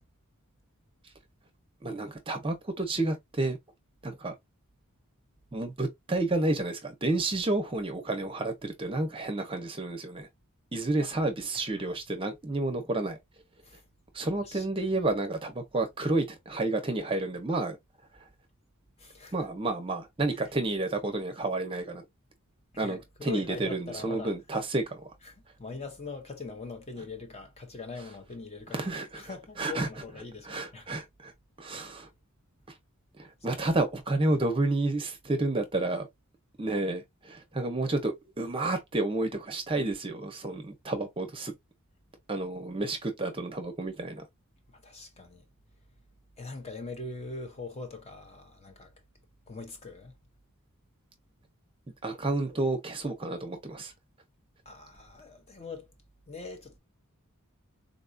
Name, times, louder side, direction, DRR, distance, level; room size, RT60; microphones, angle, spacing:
voice 1, 1.8-3.6 4.0-4.3 5.5-10.3 10.7-13.2 14.1-17.8 19.3-22.0 22.8-25.1 28.7-29.9 30.4-31.3 31.6-32.1 33.2-36.1 36.6-41.5 42.3-44.2 52.0-53.9, right 2 dB, 25° right, 0.6 m, -30 dB
voice 2, 11.5-11.9 13.6-13.8 14.4-14.7 19.0-19.5 22.7-24.3 25.2-30.9 31.7-31.9 33.5-33.6 44.7-45.4 46.4-48.9 49.5-50.1 54.6-55.9 56.3-56.8, left 3 dB, 30° left, 0.8 m, -42 dB
3.9 x 2.3 x 2.5 m
head